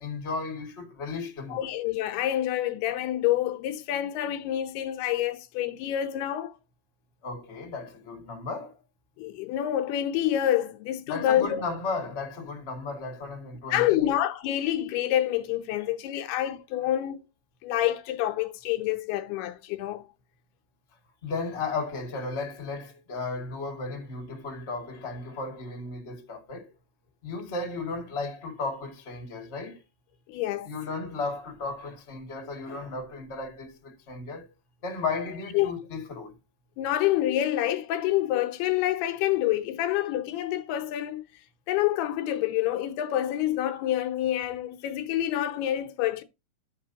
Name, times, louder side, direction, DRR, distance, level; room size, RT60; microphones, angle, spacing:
voice 1, 0.0-1.7 7.2-8.7 11.1-14.1 21.2-26.7 27.2-29.8 30.6-34.5 34.8-36.3, left 3 dB, 25° left, 1.6 m, -34 dB
voice 2, 1.5-6.5 9.2-11.6 13.7-17.3 17.6-20.1 30.3-30.7 35.5-35.7 36.8-41.2 41.7-46.2, left 12 dB, 85° left, 2.8 m, -27 dB
12.0 x 7.5 x 2.8 m
omnidirectional pair, 4.5 m